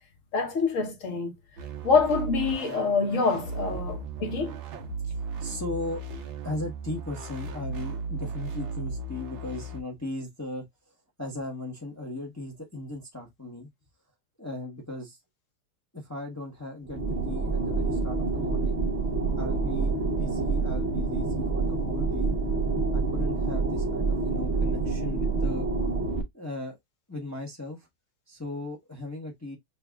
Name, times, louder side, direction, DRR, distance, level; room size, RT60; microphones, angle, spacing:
voice 1, 0.3-1.3 1.8-4.6, left 4 dB, 50° left, 1.0 m, -26 dB
sound 1, 1.6-9.8, right 3 dB, 75° right, 1.6 m, -36 dB
voice 2, 3.7-4.2 5.0-6.0 6.4-13.7 14.4-15.2 15.9-18.8 19.4-22.3 22.9-25.7 26.3-26.8 27.1-27.9 28.3-29.6, left 2 dB, 20° left, 0.5 m, -37 dB
sound 2, 16.8-26.2, right 3 dB, 45° right, 0.9 m, -27 dB
6.8 x 2.4 x 2.2 m
omnidirectional pair, 2.3 m